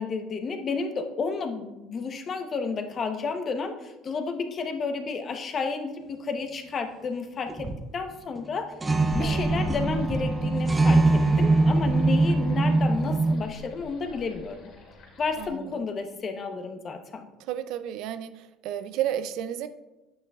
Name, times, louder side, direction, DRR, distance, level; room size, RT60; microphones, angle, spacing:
voice 1, 0.0-8.7 9.1-14.6 15.2-17.2, left 4 dB, 35° left, 6 dB, 0.8 m, -31 dB
sound 1, 7.5-7.9 8.4-8.5 8.8-13.4, right 2 dB, 15° right, 0.7 m, -22 dB
sound 2, 8.9-15.5, left 1 dB, 60° left, 2.3 m, -43 dB
voice 2, 17.5-18.3 18.6-19.7, right 11 dB, 70° right, 12 dB, 0.4 m, -31 dB
9.4 x 8.6 x 2.4 m, 1.0 s
cardioid pair, 125°, 0 cm